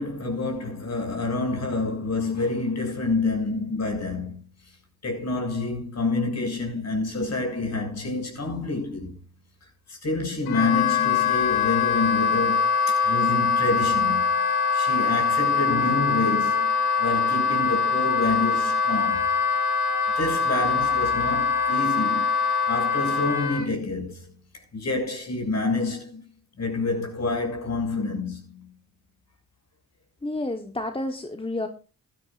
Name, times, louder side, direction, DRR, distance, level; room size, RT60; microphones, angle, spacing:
voice 1, 0.0-4.8 5.0-9.2 9.6-14.4 14.7-19.3 20.2-22.3 22.7-26.2 26.6-28.7, left 3 dB, 45° left, 7.1 m, -28 dB
Wind instrument woodwind instrument, 10.5-23.7, left 5 dB, 85° left, 2.3 m, -23 dB
voice 2, 30.2-31.7, left 2 dB, 15° left, 1.3 m, -30 dB
17.0 x 12.5 x 2.6 m
supercardioid pair, 50°, 36 cm